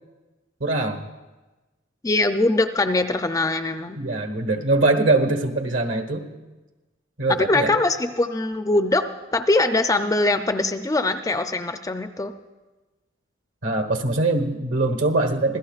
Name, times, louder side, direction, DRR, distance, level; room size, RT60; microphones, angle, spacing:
voice 1, 0.6-1.1 4.0-6.3 7.2-7.8 13.6-15.6, right 2 dB, 70° right, 6 dB, 1.4 m, -22 dB
voice 2, 2.0-4.0 7.3-12.3, left 2 dB, 15° left, 8 dB, 0.4 m, -22 dB
25.5 x 16.5 x 2.4 m, 1.2 s
head